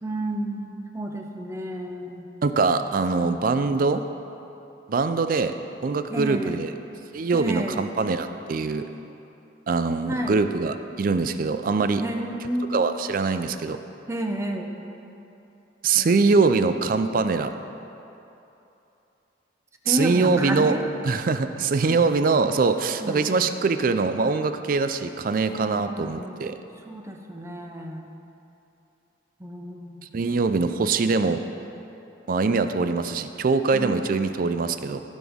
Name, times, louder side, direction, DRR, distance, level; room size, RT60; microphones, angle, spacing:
voice 1, 0.0-2.3 3.0-3.3 6.1-6.6 7.3-7.9 10.1-10.4 12.0-12.8 14.1-14.7 15.9-16.3 19.8-20.8 21.8-22.0 23.0-23.5 25.5-26.6 26.8-28.1 29.4-30.4 33.7-34.2, right 1 dB, 15° right, 2 dB, 0.7 m, -31 dB
voice 2, 2.4-4.0 4.9-5.5 5.8-6.7 7.1-8.9 9.7-12.0 12.7-13.8 15.8-17.5 19.9-20.8 21.0-26.6 30.1-31.4 32.3-35.0, right 4 dB, 50° right, 9 dB, 0.4 m, -23 dB
15.5 x 6.1 x 3.6 m, 2.9 s
head